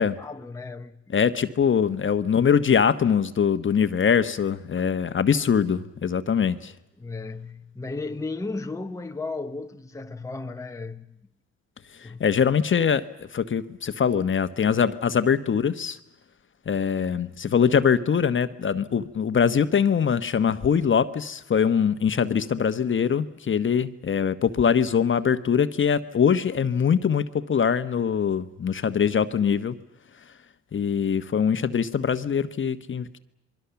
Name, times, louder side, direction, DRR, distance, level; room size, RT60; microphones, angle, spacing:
voice 1, 0.0-1.2 7.0-11.2 12.0-12.5, left 3 dB, 10° left, 1.0 m, -35 dB
voice 2, 1.1-6.7 12.0-16.0 16.7-29.8 30.7-33.2, left 7 dB, 40° left, 1.2 m, -23 dB
28.0 x 22.5 x 7.1 m
cardioid pair, 90°, 30 cm